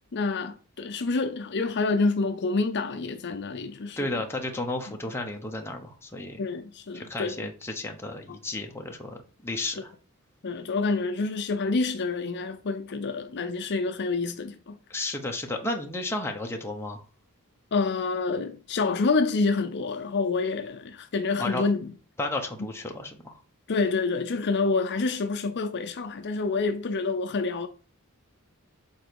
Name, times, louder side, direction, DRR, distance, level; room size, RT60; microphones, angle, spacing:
voice 1, 0.1-4.2 4.9-5.0 6.4-7.5 10.4-14.8 17.7-21.9 23.7-27.7, left 3 dB, 50° left, 0.6 m, -27 dB
voice 2, 4.0-6.4 6.9-9.9 14.9-17.0 21.4-21.6 22.2-23.4, left 2 dB, 10° left, 1.0 m, -33 dB
7.2 x 3.9 x 4.7 m
head